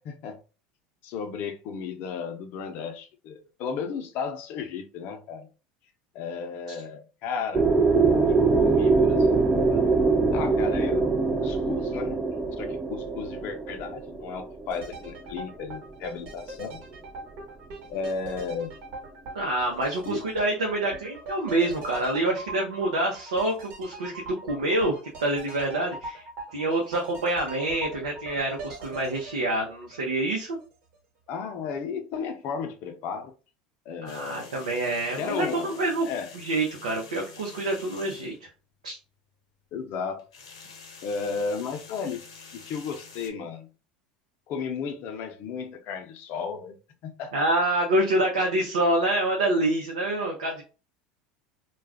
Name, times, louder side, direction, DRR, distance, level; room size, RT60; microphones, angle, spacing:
voice 1, 0.0-0.4 1.0-5.5 6.1-7.7 8.3-9.8 10.3-12.2 12.6-16.8 17.9-18.7 20.1-20.3 31.3-33.3 33.9-34.5 35.2-36.3 39.7-40.3 41.0-42.2 42.5-43.7 44.5-46.8 47.0-47.5, left 5 dB, 55° left, 0.6 m, -34 dB
sound 1, 7.5-15.4, right 4 dB, 25° right, 0.5 m, -23 dB
sound 2, 14.7-30.6 30.9-31.0, right 2 dB, 60° right, 1.0 m, -42 dB
voice 2, 19.3-26.2 26.5-30.6 34.0-36.1 36.3-38.5 38.8-39.0 47.3-50.6, right 1 dB, 90° right, 0.6 m, -27 dB
sound 3, 34.1-38.4 40.2-43.3, left 5 dB, 80° left, 0.9 m, -47 dB
2.3 x 2.2 x 3.4 m
hypercardioid pair, 85°, 4 cm